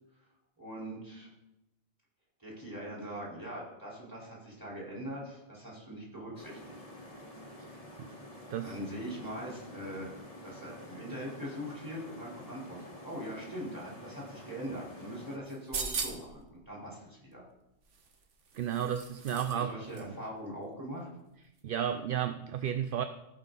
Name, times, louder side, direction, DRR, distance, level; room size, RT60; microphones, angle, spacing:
voice 1, 0.6-1.3 2.4-6.7 8.6-10.2 10.4-17.4 19.5-21.1, equal, 15° right, -6 dB, 4.0 m, -42 dB
sound 1, 6.3-15.4, equal, 30° left, 1.8 m, -49 dB
sound 2, 15.5-16.4 17.9-19.6 19.9-20.0, right 5 dB, 85° right, 1.4 m, -38 dB
voice 2, 18.5-20.2 21.6-23.0, right 9 dB, 60° right, 9 dB, 0.6 m, -33 dB
16.0 x 5.9 x 4.0 m, 0.90 s
omnidirectional pair, 1.2 m